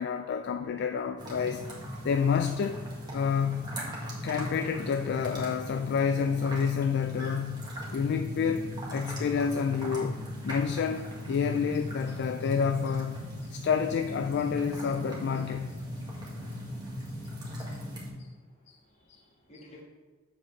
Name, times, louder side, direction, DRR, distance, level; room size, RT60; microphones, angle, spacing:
voice 1, 0.0-1.6 2.0-2.8 3.1-3.8 4.2-15.8 17.6-17.7 18.7-18.8, left 6 dB, 50° left, 7 dB, 0.3 m, -29 dB
sound 1, 1.2-18.1, left 1 dB, 20° right, 1.6 m, -38 dB
voice 2, 18.1-19.8, left 1 dB, 30° left, -1 dB, 1.5 m, -56 dB
7.4 x 7.2 x 3.2 m, 1.5 s
head